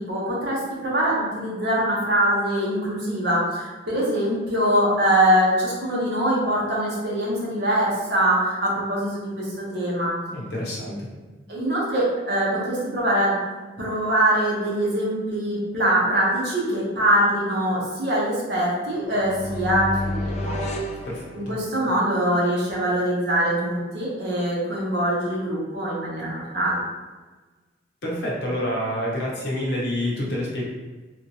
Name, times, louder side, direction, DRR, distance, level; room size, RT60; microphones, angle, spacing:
voice 1, 0.0-10.1 11.5-13.4 13.8-20.6 21.3-26.8, right 1 dB, 60° right, -5 dB, 1.0 m, -23 dB
voice 2, 10.3-11.1 21.0-21.6 28.0-30.6, left 1 dB, 60° left, -4 dB, 0.9 m, -28 dB
sound 1, 18.9-21.9, left 1 dB, 35° left, 0.3 m, -30 dB
3.1 x 3.0 x 2.8 m, 1.3 s
head